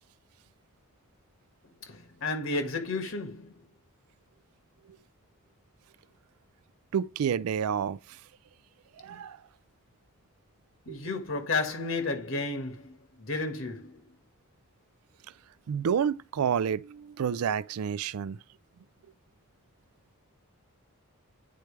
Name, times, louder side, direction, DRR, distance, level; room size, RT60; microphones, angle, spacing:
voice 1, 1.8-3.6 10.9-14.0, left 3 dB, 65° left, 1.8 m, -32 dB
voice 2, 6.9-8.0 9.0-9.4 10.9-11.0 15.7-18.4, right 7 dB, 85° right, 0.4 m, -29 dB
9.5 x 4.5 x 3.3 m
head